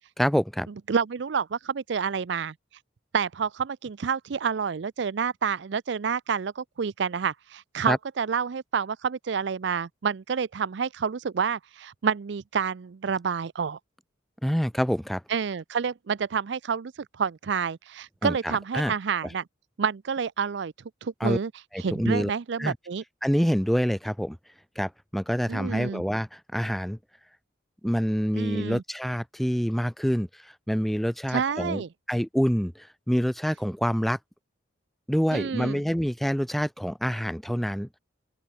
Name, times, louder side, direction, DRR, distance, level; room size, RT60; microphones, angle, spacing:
voice 1, 0.2-0.7 7.9-8.0 14.4-15.2 18.2-18.9 21.2-21.4 21.7-22.3 22.6-22.8 23.2-24.4 24.8-27.0 27.8-31.8 32.1-34.2 35.1-37.9, equal, ahead, 0.4 m, -26 dB
voice 2, 0.9-2.5 3.1-13.8 15.3-16.9 17.2-19.4 19.8-20.7 21.0-21.5 21.8-23.0 25.5-26.0 28.3-28.8 31.3-31.9 35.3-35.8, right 6 dB, 65° right, 0.5 m, -28 dB
open air
head